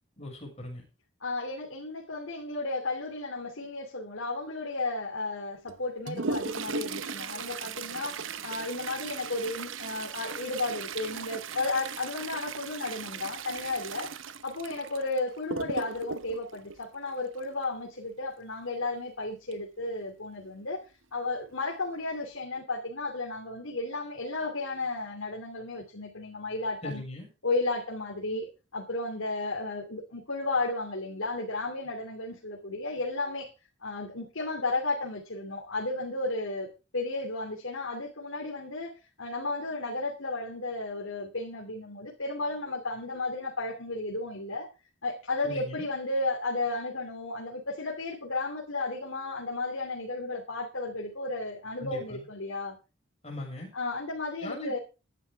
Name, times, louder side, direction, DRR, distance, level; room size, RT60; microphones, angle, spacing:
voice 1, 0.2-0.8 26.8-27.3 45.4-45.9 51.8-52.2 53.2-53.7 54.4-54.8, left 1 dB, 30° left, 6.5 m, -39 dB
voice 2, 1.2-14.1 14.4-20.8 21.1-27.0 27.4-33.5 33.8-36.7 36.9-38.9 39.2-44.7 45.0-52.8 53.7-54.8, left 2 dB, 90° left, 2.7 m, -33 dB
Toilet flush, 5.7-17.6 19.5-19.6 19.9-20.0 20.8-20.9 21.6-21.8 22.3-22.4, right 5 dB, 75° right, 0.9 m, -37 dB
17.0 x 11.5 x 3.5 m
head